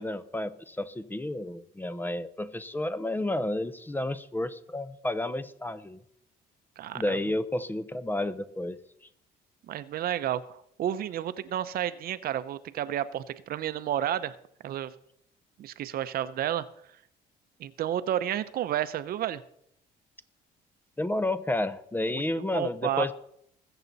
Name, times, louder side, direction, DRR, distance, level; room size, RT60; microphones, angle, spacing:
voice 1, 0.0-6.0 6.9-8.8 21.0-23.1, left 1 dB, 10° left, 14 dB, 0.7 m, -31 dB
voice 2, 6.8-7.2 9.7-14.4 14.6-14.9 15.6-16.7 17.6-19.4 22.1-22.2 22.5-23.1, right 11 dB, 60° right, 14 dB, 0.8 m, -31 dB
20.5 x 8.0 x 4.1 m, 0.71 s
cardioid pair, 110°, 17 cm